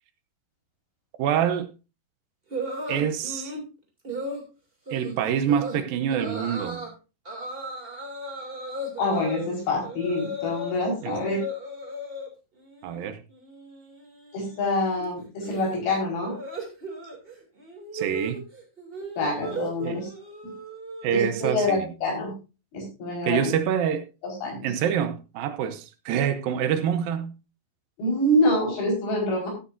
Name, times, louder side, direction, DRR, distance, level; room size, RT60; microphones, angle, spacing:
voice 1, 1.2-1.7 2.9-3.5 4.9-6.9 11.0-11.2 12.8-13.2 17.9-18.4 19.8-20.0 21.0-21.9 23.2-24.0 24.6-27.3, right 8 dB, 75° right, 2.5 m, -26 dB
sound 1, 2.5-3.6 4.0-4.4 4.9-5.1 5.5-5.8 6.1-6.9 7.2-10.7 11.0-12.3 12.6-13.0 13.3-21.5, right 1 dB, 15° right, 2.4 m, -36 dB
voice 2, 9.0-11.4 14.3-16.3 19.2-20.1 21.1-22.4 22.7-23.4 24.2-24.7 28.0-29.5, left 1 dB, 80° left, 6.6 m, -26 dB
14.5 x 9.8 x 2.6 m
omnidirectional pair, 4.3 m